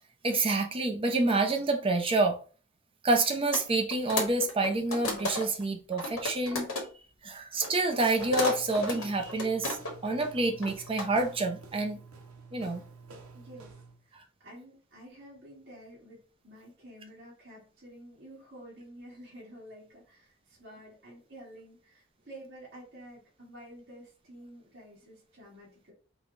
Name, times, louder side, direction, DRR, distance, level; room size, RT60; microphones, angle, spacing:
voice 1, 0.2-2.4 3.0-6.7 7.2-9.8 10.0-12.0 12.5-12.8, right 2 dB, 25° right, 0.6 m, -28 dB
sound 1, 3.5-3.7 3.9-5.6 5.9-6.8 7.6-10.1 10.4-11.1, left 2 dB, 75° left, 1.2 m, -33 dB
sound 2, 8.2-14.0, right 4 dB, 80° right, 0.9 m, -49 dB
voice 2, 13.3-13.8 14.0-14.2 14.4-25.9, right 1 dB, 55° right, 2.0 m, -50 dB
4.7 x 2.2 x 4.0 m
head